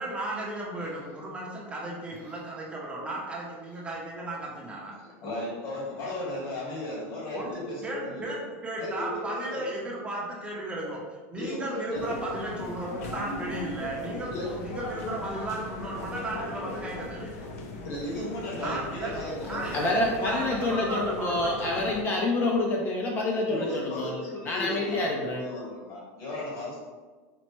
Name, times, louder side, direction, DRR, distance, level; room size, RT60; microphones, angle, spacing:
voice 1, 0.0-5.0 7.3-17.4 18.6-21.9, right 2 dB, 15° right, -3 dB, 0.6 m, -35 dB
voice 2, 5.2-8.3 8.7-9.7 11.3-12.1 14.3-14.5 17.8-20.2 23.5-26.8, left 1 dB, 45° left, -5 dB, 1.3 m, -36 dB
sound 1, 11.9-22.0, left 2 dB, 75° left, 0.5 m, -39 dB
voice 3, 19.7-24.1 24.4-25.4, left 2 dB, 25° left, -1 dB, 0.4 m, -27 dB
4.3 x 2.0 x 3.0 m, 1.4 s
supercardioid pair, 140°, 8 cm